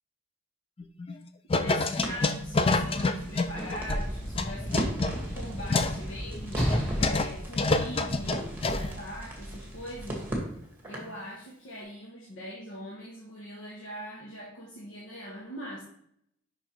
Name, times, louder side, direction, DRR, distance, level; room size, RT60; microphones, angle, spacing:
sound 1, 0.8-1.2 1.5-4.0 4.4-6.0 6.3-6.4 6.7-7.3 7.6-8.9, left 3 dB, 30° left, 0.4 m, -27 dB
voice 1, 1.5-5.0 5.3-10.5 10.9-15.8, equal, 75° left, -4 dB, 1.3 m, -42 dB
Crackle, 2.0-11.2, right 1 dB, 10° right, 1.5 m, -38 dB
Sliding door / Slam, 3.1-8.5 9.4-9.5, equal, 5° left, 1.5 m, -34 dB
5.5 x 4.7 x 4.5 m, 0.70 s
head